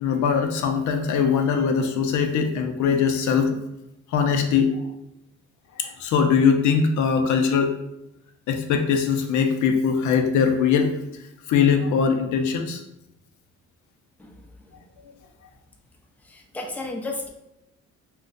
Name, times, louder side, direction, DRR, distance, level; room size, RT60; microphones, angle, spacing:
voice 1, 0.0-3.6 4.1-4.8 5.8-7.7 8.5-10.9 11.5-12.8, left 6 dB, 75° left, 5 dB, 0.5 m, -21 dB
voice 2, 16.3-17.3, left 2 dB, 5° left, 1 dB, 0.4 m, -32 dB
2.4 x 2.1 x 3.8 m, 0.85 s
cardioid pair, 90°, 30 cm